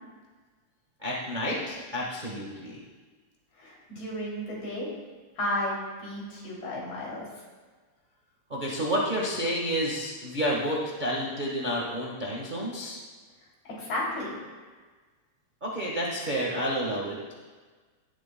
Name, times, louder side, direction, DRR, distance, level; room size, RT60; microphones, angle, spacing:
voice 1, 1.0-2.8 8.5-13.0 15.6-17.2, equal, 35° right, -4 dB, 0.7 m, -30 dB
voice 2, 3.6-4.9 5.4-7.2 13.6-14.3, left 1 dB, 60° left, -5 dB, 4.3 m, -33 dB
16.5 x 11.5 x 2.3 m, 1.4 s
omnidirectional pair, 3.6 m